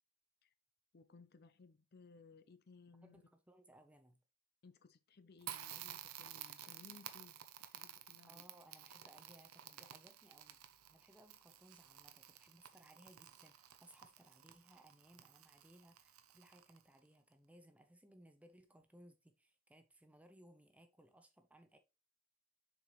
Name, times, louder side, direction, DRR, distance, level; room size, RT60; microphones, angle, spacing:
voice 1, 0.9-3.2 4.6-8.4, left 4 dB, 45° left, 0.5 m, -62 dB
voice 2, 3.0-4.2 8.3-21.8, right 1 dB, 5° right, 0.7 m, -64 dB
Crackle, 5.4-17.0, right 11 dB, 75° right, 0.7 m, -53 dB
6.7 x 4.7 x 3.1 m
head